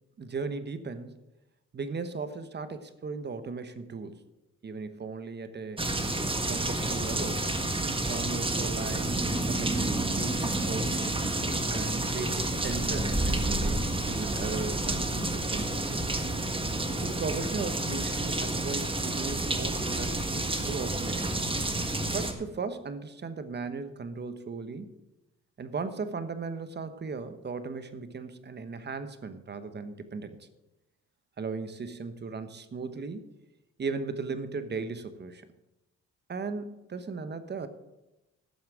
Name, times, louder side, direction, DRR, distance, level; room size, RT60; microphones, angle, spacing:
voice 1, 0.2-1.2 1.7-4.2 4.6-5.9 6.5-7.5 8.1-11.2 11.7-16.0 17.0-21.4 22.1-25.0 25.6-30.5 31.4-33.3 33.8-35.5 36.3-37.7, right 4 dB, 35° right, 11 dB, 1.1 m, -37 dB
sound 1, 5.8-22.3, right 2 dB, 20° right, 1.6 m, -29 dB
12.5 x 7.3 x 6.1 m, 0.99 s
cardioid pair, 90°, 30 cm